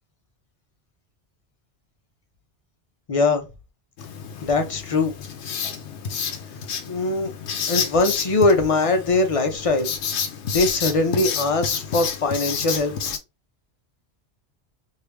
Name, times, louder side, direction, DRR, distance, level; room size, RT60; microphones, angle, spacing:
voice 1, 3.1-3.5 4.4-5.2 6.9-7.3 7.7-9.9 10.5-12.9, left 3 dB, 40° left, 0.6 m, -21 dB
Writing, 4.0-13.2, left 7 dB, 90° left, 1.0 m, -30 dB
3.3 x 2.7 x 2.9 m
omnidirectional pair, 1.1 m